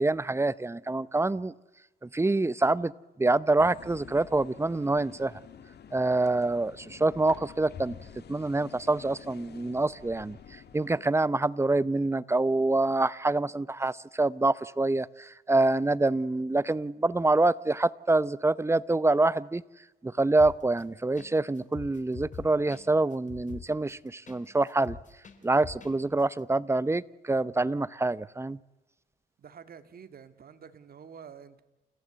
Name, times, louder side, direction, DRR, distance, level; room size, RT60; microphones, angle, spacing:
voice 1, 0.0-1.5 2.0-2.9 3.2-5.4 5.9-8.0 8.3-19.6 20.0-25.0 25.4-28.6, right 2 dB, 15° right, 19 dB, 0.7 m, -26 dB
sound 1, 3.6-11.0, left 8 dB, 55° left, 2.1 m, -49 dB
sound 2, 20.4-20.8 21.2-21.3 21.6-24.4 24.7-25.9 26.2-26.3, left 6 dB, 40° left, 3.6 m, -43 dB
voice 2, 29.4-31.6, right 7 dB, 50° right, 10 dB, 1.9 m, -48 dB
29.5 x 16.0 x 8.0 m, 1.1 s
cardioid pair, 90°, 20 cm